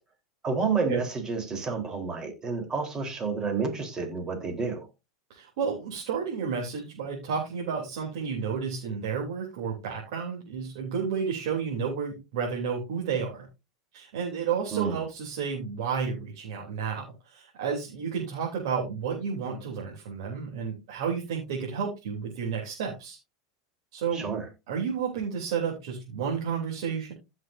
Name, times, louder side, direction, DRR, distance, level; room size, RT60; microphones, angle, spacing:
voice 1, 0.4-4.9 14.7-15.0 24.1-24.5, right 5 dB, 25° right, 3.9 m, -30 dB
voice 2, 5.3-13.5 13.9-23.2 23.9-24.3 24.7-27.1, right 6 dB, 70° right, 3.4 m, -31 dB
15.5 x 6.3 x 2.7 m
hypercardioid pair, 100°, 3 cm